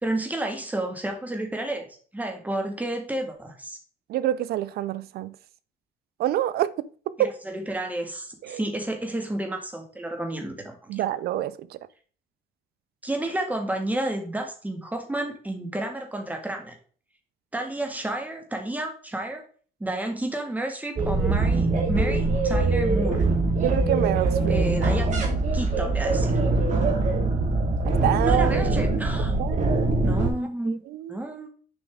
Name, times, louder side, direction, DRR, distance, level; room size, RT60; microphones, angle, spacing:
voice 1, 0.0-1.9 2.1-3.8 7.2-11.0 13.0-16.7 17.5-19.4 19.8-23.2 24.5-25.2 25.5-26.4 28.2-29.4 30.0-30.8 31.1-31.5, right 1 dB, 10° right, 1.8 m, -31 dB
voice 2, 4.1-5.3 6.2-6.8 7.2-7.3 8.4-8.6 10.9-11.8 23.6-24.6 27.9-28.8 29.4-29.9 30.7-31.2, right 13 dB, 70° right, 0.6 m, -27 dB
sound 1, 21.0-30.3, right 2 dB, 45° right, 2.2 m, -23 dB
7.0 x 5.1 x 3.6 m
cardioid pair, 110°, 17 cm